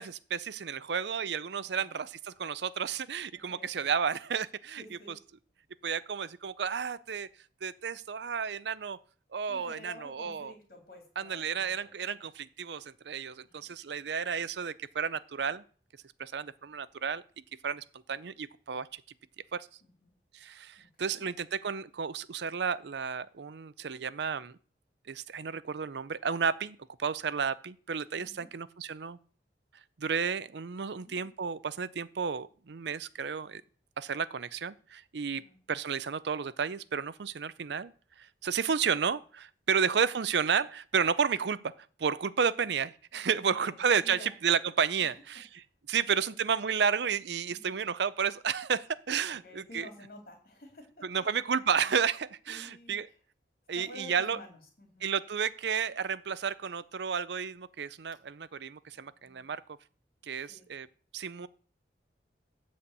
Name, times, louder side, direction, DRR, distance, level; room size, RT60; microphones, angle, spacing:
voice 1, 0.0-4.8 5.8-7.3 7.6-9.0 9.3-10.5 11.2-15.6 16.2-17.2 17.6-19.0 19.5-19.7 20.3-24.6 25.1-29.2 30.0-33.6 34.0-37.9 38.2-41.7 42.0-45.5 45.9-49.9 51.0-53.1 53.7-54.4 55.0-59.6 60.2-60.9 61.1-61.5, right 6 dB, 70° right, 17 dB, 0.5 m, -32 dB
voice 2, 1.5-1.9 3.3-3.9 4.8-5.2 9.5-12.2 13.4-13.7 19.8-20.1 20.8-21.3 28.1-28.5 30.9-31.3 35.3-35.6 39.8-40.0 43.1-44.3 45.0-45.2 46.0-46.4 47.5-47.8 49.2-51.3 52.5-53.1 53.7-55.1 58.9-59.6 60.4-60.7, left 1 dB, 50° left, 2 dB, 3.5 m, -52 dB
13.0 x 4.4 x 8.3 m, 0.43 s
head